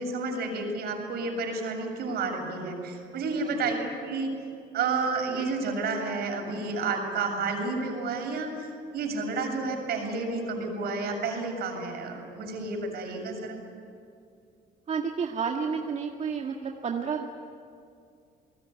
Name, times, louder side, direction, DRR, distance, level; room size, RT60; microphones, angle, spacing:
voice 1, 0.0-4.3 4.7-8.5 8.9-13.5, right 3 dB, 70° right, 3 dB, 7.2 m, -30 dB
voice 2, 14.9-17.3, right 6 dB, 40° right, 1 dB, 2.1 m, -31 dB
30.0 x 20.0 x 9.8 m, 2.4 s
cardioid pair, 110°, 17 cm